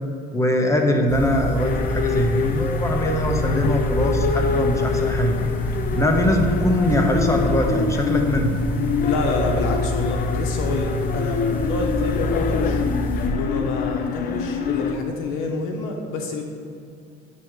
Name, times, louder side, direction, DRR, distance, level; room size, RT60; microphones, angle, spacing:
voice 1, 0.3-5.4 5.9-8.6, equal, 15° left, 2 dB, 0.9 m, -22 dB
sound 1, 1.1-13.3, equal, 10° right, 1.5 m, -26 dB
sound 2, 1.6-15.0, left 6 dB, 45° left, 0.4 m, -26 dB
voice 2, 9.0-12.8 13.3-16.5, left 3 dB, 80° left, 2 dB, 0.8 m, -27 dB
8.4 x 2.9 x 6.0 m, 2.5 s
cardioid pair, 105°, 21 cm